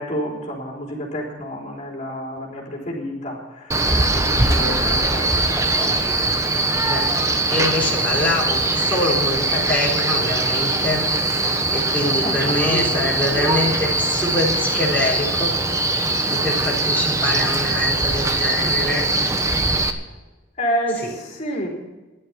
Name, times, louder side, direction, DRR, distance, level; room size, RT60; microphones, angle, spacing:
voice 1, 0.0-3.9 4.1-5.6 12.1-12.9 20.6-21.7, equal, 40° left, -2 dB, 3.8 m, -29 dB
Male speech man speaking, 3.7-19.9, right 2 dB, 15° right, 1.1 m, -21 dB
voice 2, 4.2-4.7 6.8-7.1 7.5-11.0 11.4-15.6 15.9-19.1 21.0-21.1, left 2 dB, 10° left, -6 dB, 3.8 m, -25 dB
15.5 x 11.5 x 5.8 m, 1.1 s
head